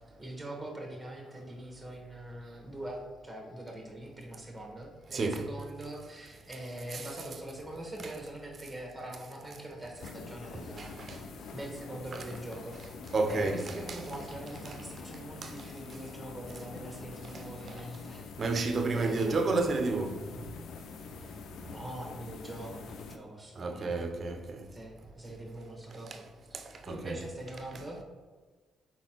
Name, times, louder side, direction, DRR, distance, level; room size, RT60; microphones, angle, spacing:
voice 1, 0.2-12.8 13.3-18.3 18.9-19.4 21.7-23.9 24.7-26.2 26.5-28.0, right 1 dB, 5° right, 1.2 m, -43 dB
voice 2, 5.1-5.5 6.9-7.1 10.8-11.2 13.1-14.0 15.4-15.5 18.4-20.1 23.6-24.6 26.9-27.2, right 3 dB, 45° right, 0.5 m, -30 dB
sound 1, 10.0-23.2, left 5 dB, 75° left, 0.3 m, -46 dB
4.1 x 4.1 x 2.9 m
cardioid pair, 90°, 0 cm